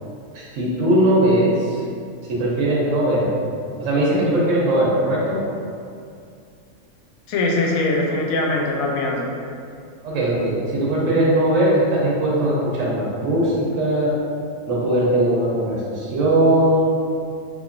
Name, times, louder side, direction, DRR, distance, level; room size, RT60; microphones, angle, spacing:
voice 1, 0.3-1.8 2.3-3.3 3.8-5.4 10.0-14.1 14.7-16.9, right 1 dB, 70° right, -6 dB, 1.2 m, -19 dB
voice 2, 7.3-9.3, left 2 dB, 90° left, -1 dB, 1.0 m, -21 dB
3.4 x 3.2 x 2.5 m, 2.4 s
omnidirectional pair, 1.4 m